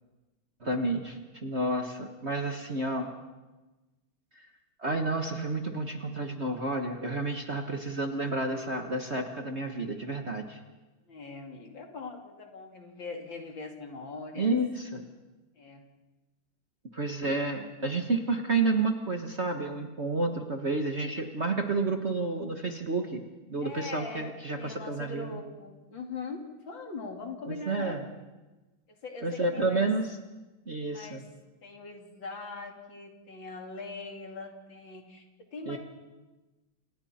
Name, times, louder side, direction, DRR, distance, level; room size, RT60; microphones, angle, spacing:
voice 1, 0.6-3.1 4.8-10.6 14.4-15.0 16.9-23.2 23.5-25.3 27.5-28.0 29.2-30.1 30.7-31.2 35.7-35.8, right 2 dB, 35° right, 3 dB, 1.5 m, -30 dB
voice 2, 11.1-14.6 15.5-15.8 17.8-17.9 23.6-24.3 24.6-26.4 26.7-28.0 28.9-29.9 30.8-31.2 31.6-35.2 35.5-35.8, left 3 dB, 60° left, 2 dB, 3.3 m, -41 dB
29.5 x 27.5 x 4.4 m, 1.1 s
omnidirectional pair, 2.4 m